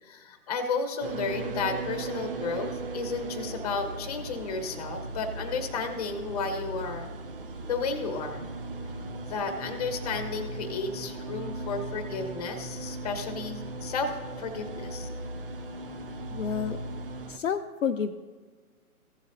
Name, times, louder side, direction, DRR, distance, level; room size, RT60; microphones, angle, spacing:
voice 1, 0.0-7.1 7.7-8.5 9.3-15.1, left 4 dB, 25° left, 7 dB, 1.1 m, -33 dB
sound 1, 1.0-17.4, right 2 dB, 40° right, 0.7 m, -37 dB
voice 2, 16.3-16.8 17.3-18.1, left 7 dB, 60° left, 5 dB, 0.6 m, -29 dB
16.0 x 7.3 x 2.7 m, 1.4 s
hypercardioid pair, 150°, 44 cm